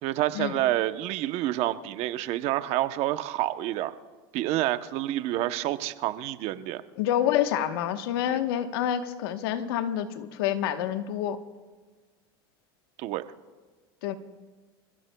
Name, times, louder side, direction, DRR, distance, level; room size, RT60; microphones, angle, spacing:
voice 1, 0.0-3.9 4.3-6.8 8.3-8.4 13.0-13.2, right 14 dB, 55° right, 11 dB, 0.8 m, -28 dB
voice 2, 7.0-11.4 14.0-14.1, left 10 dB, 80° left, 8 dB, 1.1 m, -27 dB
28.5 x 15.5 x 2.3 m, 1.4 s
supercardioid pair, 110°, 12 cm